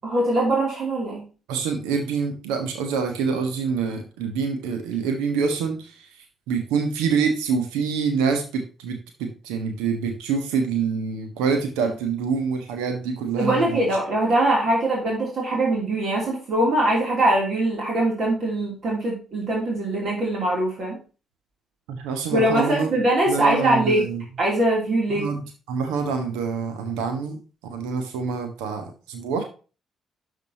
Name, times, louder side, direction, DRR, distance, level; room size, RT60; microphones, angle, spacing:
voice 1, 0.0-1.2 13.4-21.0 22.3-24.0 24.4-25.3, right 1 dB, 50° right, -2 dB, 3.0 m, -22 dB
voice 2, 1.5-6.1 6.5-13.9 21.9-22.9 23.3-24.2 25.1-27.4 27.7-29.4, right 5 dB, 65° right, 5 dB, 1.4 m, -26 dB
12.0 x 5.1 x 2.9 m, 0.34 s
figure-of-eight pair, 40°, 0 cm